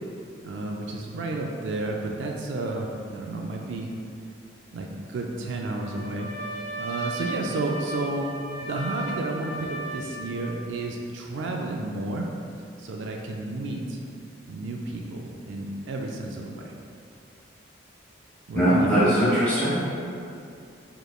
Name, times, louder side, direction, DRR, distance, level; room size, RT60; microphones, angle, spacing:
voice 1, 0.4-3.9 4.7-6.3 6.8-8.3 8.6-12.3 12.8-14.0 14.5-16.8 18.5-19.0, right 2 dB, 70° right, 1 dB, 0.3 m, -31 dB
Trumpet, 5.7-10.6, right 2 dB, 15° right, 1.4 m, -35 dB
voice 2, 18.5-19.8, equal, 5° left, -12 dB, 1.4 m, -20 dB
5.0 x 3.0 x 2.2 m, 2.5 s
head